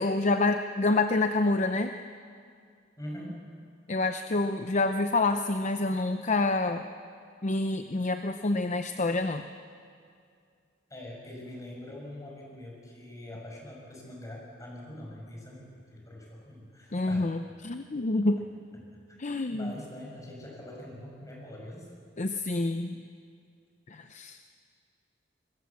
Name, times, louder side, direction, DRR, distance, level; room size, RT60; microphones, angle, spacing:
voice 1, 0.0-1.9 3.9-6.9 7.4-9.5 16.9-18.4 19.2-19.7 22.2-23.0 23.9-24.5, left 2 dB, 40° left, 8 dB, 0.7 m, -27 dB
voice 2, 3.0-3.4 10.9-17.3 19.1-19.2 19.5-21.9, left 1 dB, 20° left, -2 dB, 6.2 m, -43 dB
24.5 x 21.0 x 7.3 m, 2.3 s
head